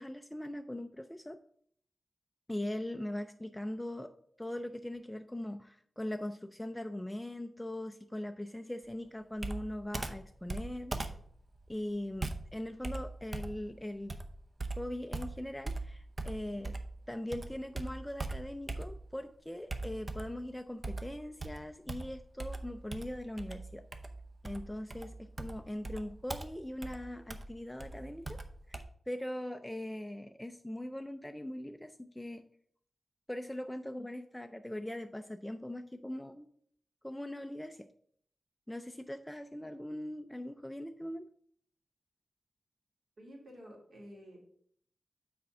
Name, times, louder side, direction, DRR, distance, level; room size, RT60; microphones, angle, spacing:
voice 1, 0.0-1.4 2.5-4.1 4.4-10.9 11.7-14.2 14.8-16.8 17.1-23.8 24.4-28.4 28.7-28.8 29.1-32.5 33.3-36.5 37.0-37.9 38.7-41.3, left 1 dB, 10° left, 6 dB, 0.3 m, -41 dB
Computer keyboard, 9.4-17.0 17.3-19.2 19.7-20.4 20.8-28.8, right 2 dB, 35° right, 0.6 m, -41 dB
voice 2, 43.2-44.4, equal, 60° right, -2 dB, 2.6 m, -51 dB
5.9 x 4.2 x 5.8 m, 0.64 s
wide cardioid pair, 105°, 0 cm